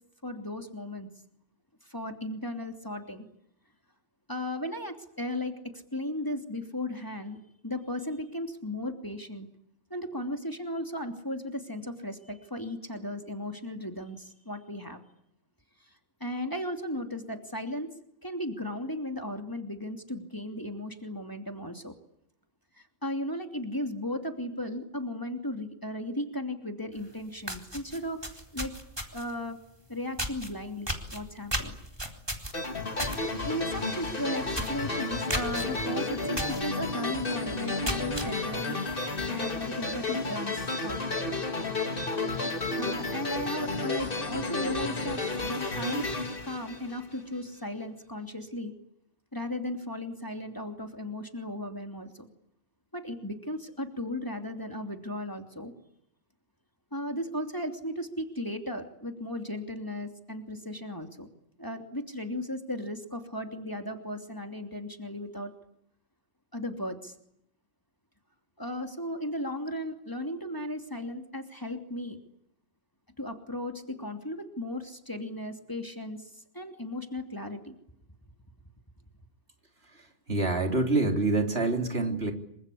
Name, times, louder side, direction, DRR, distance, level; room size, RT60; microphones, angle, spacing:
voice 1, 0.2-1.1 1.8-3.3 4.3-7.4 7.6-9.5 9.9-15.0 16.2-17.9 18.2-21.9 22.8-28.7 29.1-29.6 29.9-31.7 33.2-38.8 39.3-41.3 42.8-46.1 46.4-48.7 49.3-52.3 52.9-55.7 56.9-61.3 61.6-65.5 66.5-67.1 68.6-72.2 73.2-77.7, left 1 dB, 15° left, 4 dB, 2.9 m, -36 dB
sound 1, 27.0-27.1 27.4-29.3 30.2-30.5 30.9-33.2 33.5-33.8 34.1-34.2 34.5-34.8 35.3-35.6 36.4-36.6 37.1-37.2 37.6-38.3, equal, 20° right, 4.1 m, -33 dB
sound 2, 32.5-47.4, left 3 dB, 50° left, 2.7 m, -32 dB
voice 2, 80.3-82.3, right 2 dB, 60° right, 3 dB, 3.9 m, -26 dB
27.0 x 25.0 x 8.6 m, 0.73 s
omnidirectional pair, 1.2 m